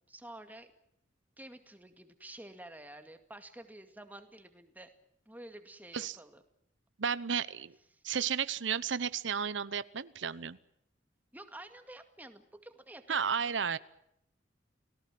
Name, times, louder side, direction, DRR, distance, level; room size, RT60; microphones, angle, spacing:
voice 1, 0.1-0.7 1.4-4.9 5.3-6.4 7.9-8.0 11.3-13.2, right 1 dB, 10° right, 8 dB, 2.2 m, -50 dB
voice 2, 7.0-7.8 8.0-10.6 13.1-13.8, right 7 dB, 90° right, 17 dB, 0.8 m, -33 dB
29.5 x 18.5 x 7.5 m, 0.78 s
head